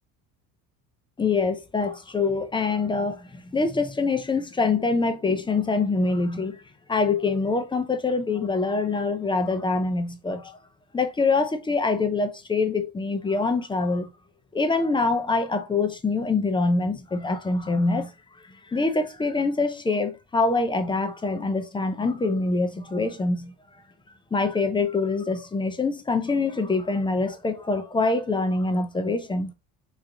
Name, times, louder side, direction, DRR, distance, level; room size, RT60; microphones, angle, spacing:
voice 1, 1.2-6.6 6.9-10.6 10.9-14.1 14.5-18.1 18.7-23.5 24.3-29.5, left 3 dB, 15° left, 0.4 m, -25 dB
3.0 x 2.4 x 3.6 m
supercardioid pair, 100°, 38 cm